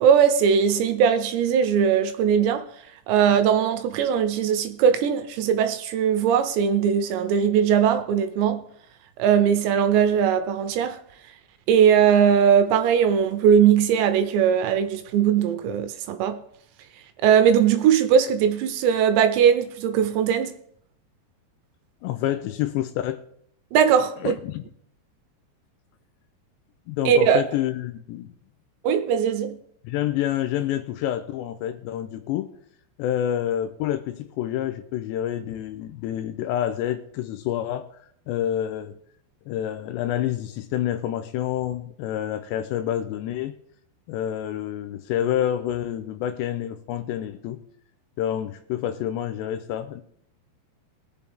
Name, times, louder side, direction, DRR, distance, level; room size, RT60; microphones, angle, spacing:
voice 1, 0.0-2.7 3.1-8.6 9.2-11.0 11.7-16.4 17.2-20.5 23.7-24.3 27.1-27.4 28.8-29.6, right 8 dB, 80° right, 2.8 m, -20 dB
voice 2, 22.0-23.2 24.2-24.6 26.9-28.3 29.8-32.5 33.0-37.9 38.3-39.0 39.5-43.5 44.1-47.6 48.2-50.0, left 11 dB, 80° left, 2.6 m, -28 dB
20.5 x 7.0 x 3.5 m
omnidirectional pair, 5.4 m